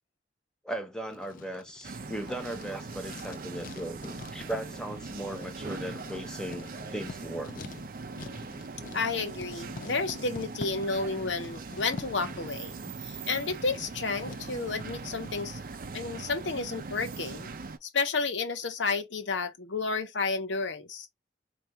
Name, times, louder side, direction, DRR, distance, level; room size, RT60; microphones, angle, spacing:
voice 1, 0.6-7.6, right 1 dB, 5° left, 0.8 m, -37 dB
Writing, 1.1-15.5, left 3 dB, 45° left, 0.4 m, -47 dB
sound 1, 1.8-17.8, right 3 dB, 50° right, 0.5 m, -41 dB
voice 2, 8.9-12.8 13.0-15.6 15.9-17.5 17.8-21.1, left 4 dB, 85° left, 0.9 m, -31 dB
4.6 x 2.5 x 3.0 m
head